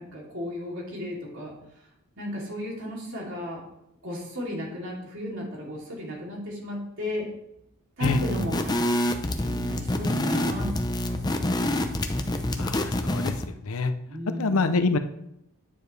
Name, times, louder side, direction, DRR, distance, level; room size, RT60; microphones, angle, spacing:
voice 1, 0.0-1.5 2.2-3.6 4.0-7.3 8.0-10.7 14.0-14.7, left 1 dB, 60° right, -3 dB, 2.9 m, -34 dB
sound 1, 8.0-13.5, left 1 dB, 20° left, 0.6 m, -27 dB
voice 2, 12.6-13.3 13.6-13.9 14.4-15.0, left 3 dB, 70° left, 10 dB, 0.6 m, -25 dB
10.0 x 6.9 x 3.3 m, 0.80 s
head